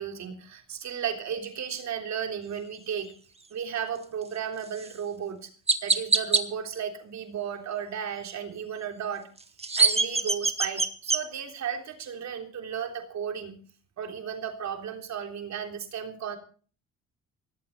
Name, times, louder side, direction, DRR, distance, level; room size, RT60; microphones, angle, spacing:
voice 1, 0.0-3.1 3.5-5.5 5.8-9.3 9.8-13.5 14.0-16.4, right 8 dB, 65° right, 4 dB, 3.5 m, -34 dB
Chirp tweet, 4.8-4.9 5.7-6.4 9.4-11.2, right 3 dB, 20° right, 1.9 m, -23 dB
16.5 x 16.5 x 4.2 m, 0.41 s
cardioid pair, 90°, 30 cm